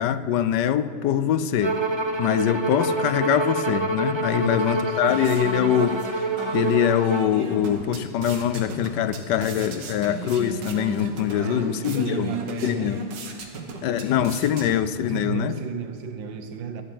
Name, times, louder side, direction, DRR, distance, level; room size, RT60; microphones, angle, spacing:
voice 1, 0.0-1.8 2.2-6.0 6.5-12.3 12.6-13.0 13.8-15.5, left 10 dB, 75° left, 12 dB, 1.2 m, -23 dB
Bowed string instrument, 1.6-7.3, right 3 dB, 40° right, 0.4 m, -27 dB
voice 2, 4.4-5.4 11.4-13.1 15.1-16.8, right 6 dB, 90° right, 8 dB, 1.8 m, -34 dB
sound 1, 4.6-15.1, right 2 dB, 75° right, 2.1 m, -37 dB
14.5 x 8.3 x 9.3 m, 2.3 s
omnidirectional pair, 2.0 m